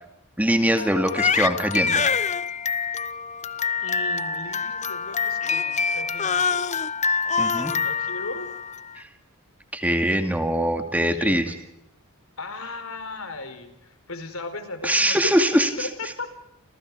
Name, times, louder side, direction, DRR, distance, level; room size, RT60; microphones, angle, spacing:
voice 1, 0.4-2.0 7.4-7.7 9.0-9.1 9.7-11.5 14.8-15.9, right 1 dB, 5° right, 6 dB, 2.3 m, -22 dB
Crying sobbing, 0.8-8.9, left 5 dB, 35° left, 0.9 m, -26 dB
voice 2, 3.8-6.8 7.6-8.5 11.1-11.5 12.4-15.3 15.8-16.3, left 3 dB, 65° left, 10 dB, 4.6 m, -37 dB
29.5 x 28.5 x 4.9 m, 0.85 s
head